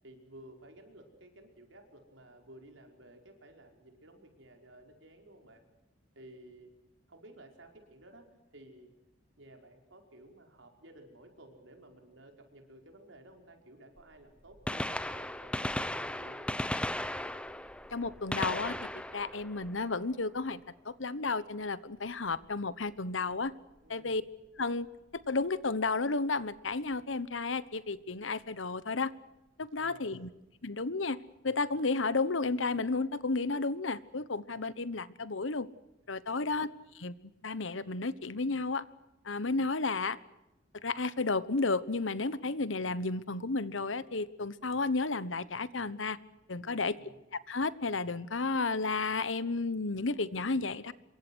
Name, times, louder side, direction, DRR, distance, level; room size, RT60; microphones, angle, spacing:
voice 1, 0.0-5.6 6.2-6.7 7.1-8.9 9.4-16.7 23.8-24.2 29.7-30.3 36.3-36.6 46.6-47.2, right 1 dB, 85° right, 3 dB, 5.2 m, -55 dB
Gunshot gunfire, 14.0-14.1 14.5-20.4 22.3-22.5 23.5-23.6 25.2-25.3 26.6-26.7 26.9-27.0, left 1 dB, 5° left, 1.0 m, -36 dB
voice 2, 17.9-18.8 19.1-23.5 23.9-24.2 24.6-24.9 25.3-29.1 29.6-30.3 30.6-31.2 31.4-35.7 36.1-36.7 37.0-37.2 37.4-38.8 39.2-40.2 40.8-46.2 46.5-46.9 47.5-50.9, left 3 dB, 90° left, 16 dB, 1.2 m, -32 dB
27.0 x 23.5 x 6.4 m, 0.94 s
head